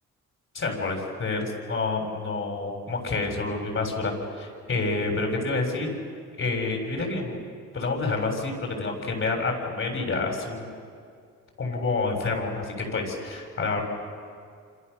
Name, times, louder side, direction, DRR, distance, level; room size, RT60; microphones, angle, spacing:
voice 1, 0.5-5.9 6.4-7.4 7.7-10.7 11.6-13.8, left 3 dB, 45° left, 2 dB, 7.2 m, -28 dB
28.5 x 27.0 x 7.0 m, 2.2 s
cardioid pair, 90°, 30 cm